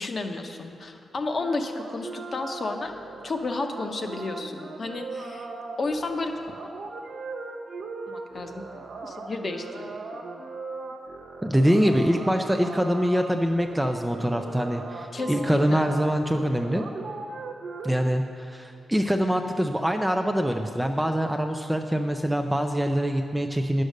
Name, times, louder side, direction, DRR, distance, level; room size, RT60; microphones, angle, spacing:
voice 1, 0.0-2.9 3.2-5.5 5.8-6.3 8.1-9.9 15.1-15.9, left 3 dB, 35° left, 5 dB, 0.7 m, -32 dB
sound 1, 1.4-17.9, right 3 dB, 80° right, 1.1 m, -39 dB
voice 2, 11.4-16.8 17.8-23.8, equal, 5° right, 4 dB, 0.3 m, -24 dB
10.5 x 6.5 x 6.4 m, 2.5 s
wide cardioid pair, 180°, 0 cm